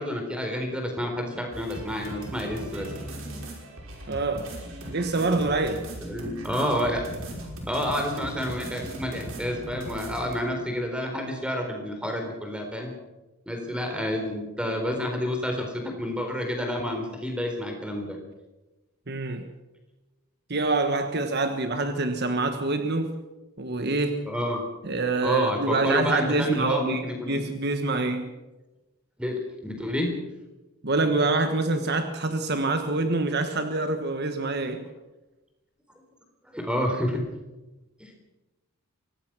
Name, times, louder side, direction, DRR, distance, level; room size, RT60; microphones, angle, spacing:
voice 1, 0.0-2.9 6.0-7.0 7.7-12.9 13.5-18.2 24.3-24.6 25.2-27.3 29.2-30.1 36.5-37.2 38.0-38.1, left 1 dB, 5° right, 4.1 m, -29 dB
sound 1, 1.5-10.4, right 1 dB, 65° right, 5.7 m, -38 dB
voice 2, 4.1-4.6 4.9-5.9 19.1-19.5 20.5-23.1 23.6-24.3 24.8-28.3 30.8-34.9, right 3 dB, 45° right, 1.4 m, -26 dB
24.0 x 18.0 x 6.1 m
head